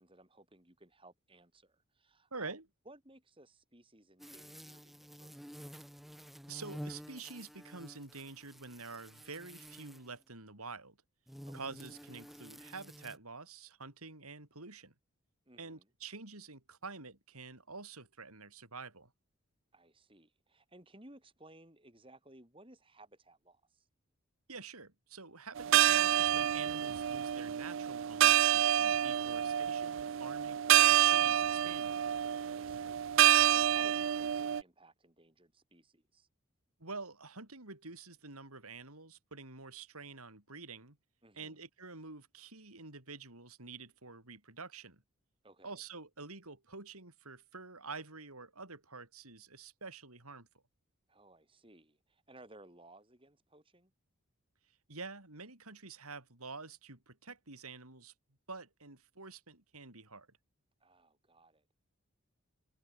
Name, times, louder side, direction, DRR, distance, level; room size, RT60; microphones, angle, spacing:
voice 1, 0.0-2.6 2.9-5.4 5.7-5.8 11.5-11.8 15.5-15.9 19.7-23.9 32.4-36.3 41.2-41.6 45.4-45.8 51.1-53.9 60.8-61.8, right 2 dB, 25° right, 4.1 m, -59 dB
voice 2, 2.3-2.6 6.5-11.0 11.5-14.9 15.6-19.1 24.5-32.0 36.8-41.0 41.3-45.0 45.6-50.5 54.9-58.1 58.5-60.4, right 4 dB, 90° right, 5.3 m, -48 dB
sound 1, 4.2-10.2 11.3-13.2, equal, ahead, 1.7 m, -50 dB
sound 2, 25.6-34.6, right 11 dB, 60° right, 0.4 m, -28 dB
head